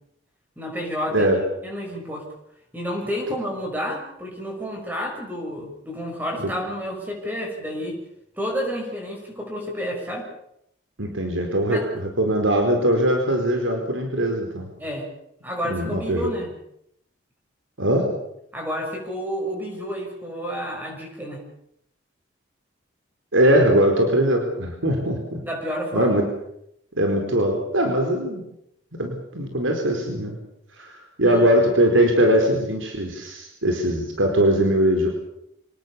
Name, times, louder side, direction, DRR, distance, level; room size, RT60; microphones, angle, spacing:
voice 1, 0.6-1.3 1.6-2.3 2.7-8.0 8.4-10.3 11.7-11.9 14.8-15.1 15.4-16.5 18.5-21.4 25.4-26.1 31.2-31.5, equal, 10° right, 0 dB, 6.5 m, -30 dB
voice 2, 11.0-14.7 15.6-16.3 17.8-18.1 23.3-25.4 25.9-26.3 27.0-28.4 29.0-30.4 30.8-30.9 31.2-35.1, right 1 dB, 90° right, 3 dB, 4.4 m, -21 dB
27.0 x 19.0 x 7.1 m, 0.76 s
head